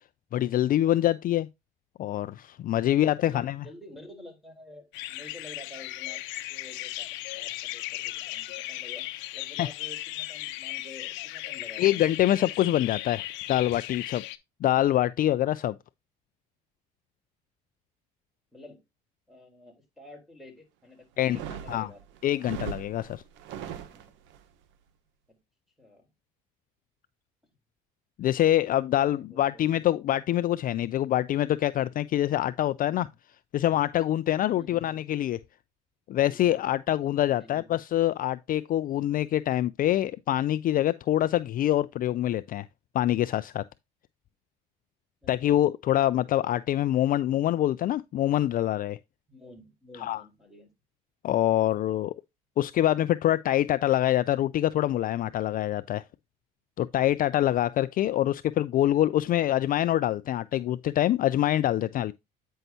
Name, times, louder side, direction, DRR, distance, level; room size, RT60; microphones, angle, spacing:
voice 1, 0.3-1.5 2.0-3.6 9.6-9.7 11.8-14.2 14.6-15.8 21.2-21.4 21.7-21.9 22.2-23.2 28.2-33.1 33.5-35.4 36.1-42.7 42.9-43.6 45.3-49.0 50.0-50.2 51.2-52.1 52.6-56.0 56.8-62.1, left 13 dB, 45° left, 0.4 m, -25 dB
voice 2, 2.9-6.2 6.5-7.1 7.3-9.0 9.3-12.4 18.5-18.8 19.3-22.0 23.9-24.1 25.3-25.4 25.8-26.1 28.9-29.7 34.5-34.9 37.4-37.7 45.2-45.6 49.3-50.7, left 2 dB, ahead, 4.0 m, -49 dB
sound 1, 4.9-14.4, left 17 dB, 75° left, 0.7 m, -37 dB
sound 2, 21.2-24.4, right 9 dB, 75° right, 1.1 m, -40 dB
9.0 x 5.6 x 2.7 m
supercardioid pair, 85°, 19 cm